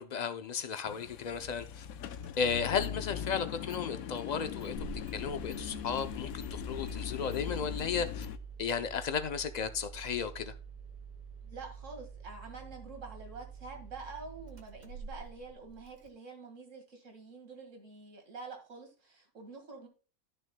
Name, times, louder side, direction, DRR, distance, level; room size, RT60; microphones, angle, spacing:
voice 1, 0.0-1.9 2.4-4.7 5.1-8.3 8.6-10.5, left 6 dB, 55° left, 0.4 m, -34 dB
sound 1, 0.8-8.4, left 8 dB, 85° left, 1.1 m, -40 dB
Engine starting, 2.2-2.3 2.8-3.4 3.7-3.8 4.2-16.1, right 4 dB, 35° right, 1.1 m, -48 dB
voice 2, 11.4-19.9, right 4 dB, 60° right, 2.3 m, -47 dB
13.0 x 6.2 x 2.2 m
omnidirectional pair, 1.5 m